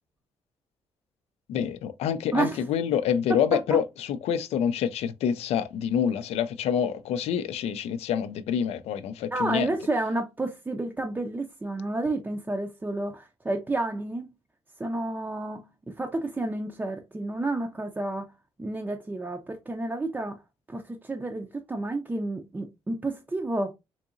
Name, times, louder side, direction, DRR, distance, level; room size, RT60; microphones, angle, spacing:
voice 1, 1.5-9.7, left 8 dB, 85° left, 0.4 m, -27 dB
voice 2, 2.3-2.6 9.3-14.3 14.8-18.3 18.6-20.4 20.7-23.7, right 2 dB, 15° right, 0.4 m, -30 dB
3.7 x 2.8 x 2.4 m
cardioid pair, 110°, 10 cm